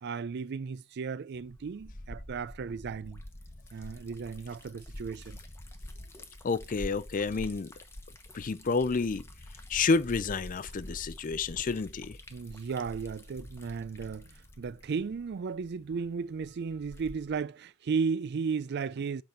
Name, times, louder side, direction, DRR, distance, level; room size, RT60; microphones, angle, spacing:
voice 1, 0.0-3.2 3.7-5.4 12.3-14.3 14.6-19.2, right 5 dB, 50° right, 0.4 m, -35 dB
Liquid, 1.3-17.4, left 1 dB, 10° left, 1.0 m, -47 dB
voice 2, 6.4-7.7 8.3-9.2 9.7-12.2, left 4 dB, 35° left, 0.4 m, -29 dB
8.0 x 5.2 x 4.3 m
head